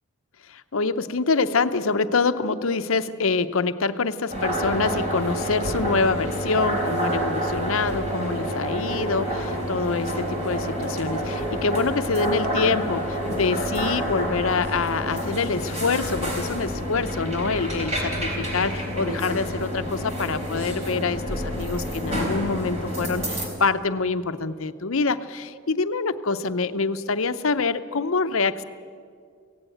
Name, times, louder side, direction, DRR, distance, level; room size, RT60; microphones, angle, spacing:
voice 1, 0.5-28.6, left 4 dB, 70° left, 11 dB, 0.7 m, -25 dB
sound 1, 4.3-23.5, equal, 30° right, 4.1 m, -28 dB
17.0 x 16.5 x 9.1 m, 2.2 s
head